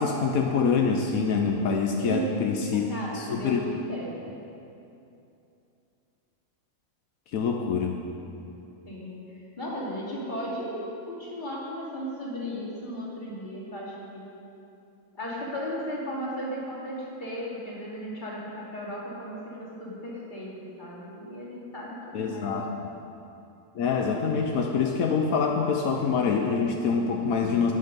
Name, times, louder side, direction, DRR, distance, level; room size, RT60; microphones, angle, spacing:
voice 1, 0.0-2.9 3.1-3.6 7.3-8.0 22.1-22.9 23.7-27.7, left 5 dB, 80° left, 2 dB, 1.2 m, -25 dB
voice 2, 2.0-2.4 2.7-4.1 8.8-14.3 15.1-22.7, equal, 35° left, -6 dB, 2.9 m, -35 dB
12.0 x 11.0 x 5.3 m, 2.7 s
omnidirectional pair, 1.5 m